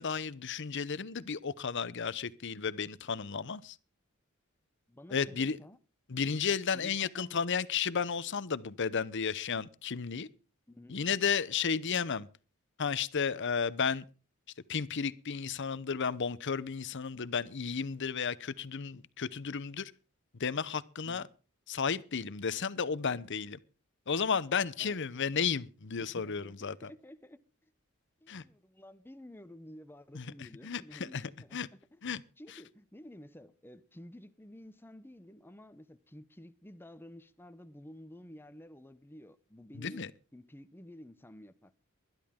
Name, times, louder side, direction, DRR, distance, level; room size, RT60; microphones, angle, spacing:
voice 1, 0.0-3.8 5.1-5.6 6.1-10.3 10.9-12.3 12.8-14.1 14.7-19.9 20.4-21.2 21.7-23.6 24.1-26.9 28.3-28.4 30.1-31.7 32.0-32.2 32.5-32.6 39.7-40.1, left 6 dB, 55° left, 0.8 m, -33 dB
voice 2, 4.9-5.8 6.7-7.4 10.7-11.0 21.1-21.3 24.8-25.0 26.0-27.4 28.2-31.6 31.9-41.8, left 1 dB, 10° left, 0.8 m, -52 dB
20.5 x 12.5 x 3.7 m
head